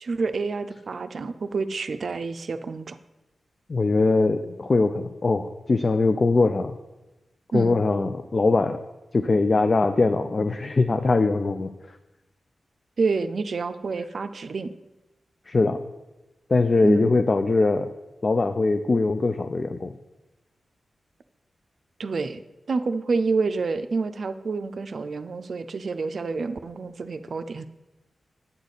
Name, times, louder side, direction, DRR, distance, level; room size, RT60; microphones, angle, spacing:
voice 1, 0.0-3.0 7.5-7.8 13.0-14.7 16.8-17.1 22.0-22.4 22.7-27.7, right 4 dB, 60° right, 11 dB, 0.4 m, -28 dB
voice 2, 3.7-6.7 7.5-8.8 9.1-11.7 15.5-15.8 16.5-17.9 18.2-19.9, left 3 dB, 40° left, 8 dB, 0.4 m, -21 dB
8.8 x 6.6 x 4.1 m, 1.0 s
wide cardioid pair, 100°, 0 cm